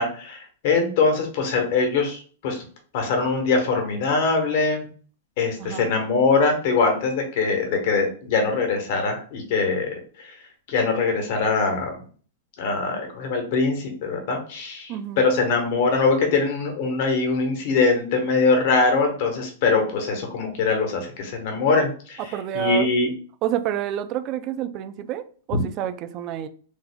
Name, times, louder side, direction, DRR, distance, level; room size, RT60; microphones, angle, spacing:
voice 1, 0.0-2.6 2.9-4.9 5.4-10.0 10.2-10.3 10.7-11.9 12.6-22.2 22.5-23.1 25.5-25.6, left 4 dB, 50° left, 1.0 m, -22 dB
voice 2, 14.9-15.2 22.2-22.9 23.4-26.5, right 11 dB, 35° right, 0.3 m, -28 dB
3.4 x 2.0 x 3.4 m
supercardioid pair, 150°, 0 cm